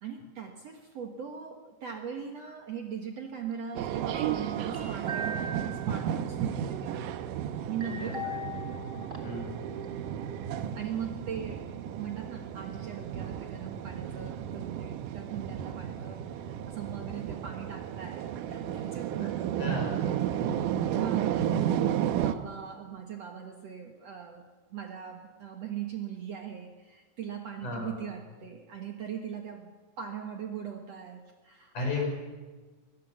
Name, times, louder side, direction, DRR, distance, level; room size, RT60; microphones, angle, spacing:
voice 1, 0.0-7.0 7.7-8.3 10.8-19.6 20.3-20.5 20.8-24.5 24.7-32.1, right 8 dB, 55° right, 3 dB, 2.1 m, -40 dB
sound 1, 3.8-22.4, right 10 dB, 70° right, 2.3 m, -33 dB
sound 2, 4.1-6.0 7.8-9.6 9.8-9.9, equal, 20° right, 1.8 m, -40 dB
voice 2, 7.8-8.4 9.2-9.7 19.2-19.3 19.6-20.0 20.4-20.7 27.6-28.0 31.7-32.1, left 2 dB, 55° left, 1 dB, 7.2 m, -34 dB
23.0 x 20.5 x 7.2 m, 1.3 s
omnidirectional pair, 4.3 m